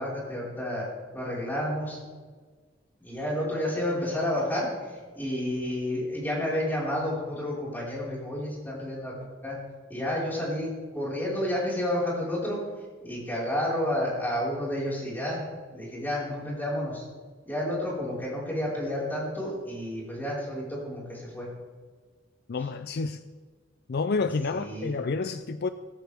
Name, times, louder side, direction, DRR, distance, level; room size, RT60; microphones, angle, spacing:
voice 1, 0.0-2.0 3.0-9.1 9.4-9.6 9.9-17.0 17.4-21.5 24.5-24.9, left 1 dB, 10° left, -5 dB, 5.0 m, -31 dB
voice 2, 22.5-23.2 23.9-25.7, left 4 dB, 55° left, 11 dB, 0.5 m, -29 dB
18.0 x 13.5 x 3.6 m, 1.5 s
head